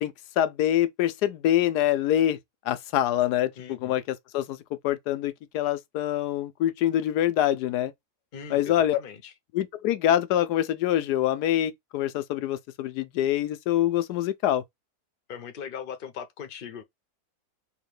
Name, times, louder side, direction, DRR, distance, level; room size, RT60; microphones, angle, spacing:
voice 1, 0.0-2.4 2.6-7.9 8.5-9.0 9.5-14.6, left 12 dB, 90° left, 1.2 m, -25 dB
voice 2, 3.6-4.0 8.3-9.3 15.3-16.8, left 7 dB, 50° left, 0.7 m, -40 dB
3.6 x 2.8 x 3.1 m
omnidirectional pair, 1.7 m